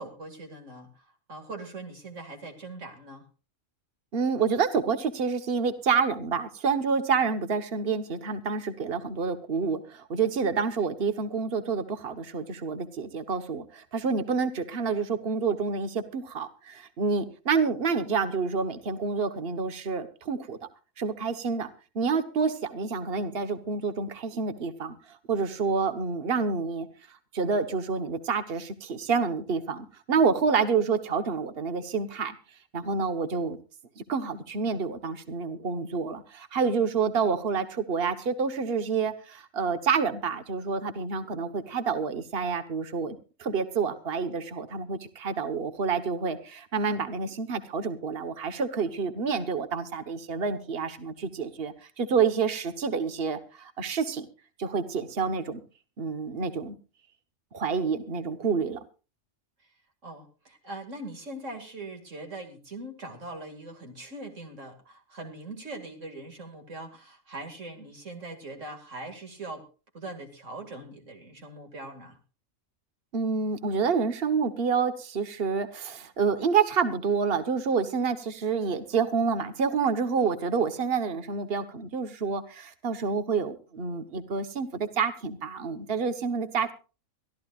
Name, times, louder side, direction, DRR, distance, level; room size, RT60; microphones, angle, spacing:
voice 1, 0.0-3.2 59.6-59.7 60.0-69.7 69.9-72.2, right 2 dB, 70° right, 4 dB, 2.7 m, -41 dB
voice 2, 4.1-20.6 21.0-21.7 21.9-26.9 27.3-32.3 32.7-33.6 34.0-54.2 54.6-55.6 56.0-56.8 57.5-58.8 73.1-86.7, right 5 dB, 50° right, 10 dB, 1.5 m, -28 dB
24.0 x 13.5 x 2.5 m, 0.33 s
omnidirectional pair, 1.3 m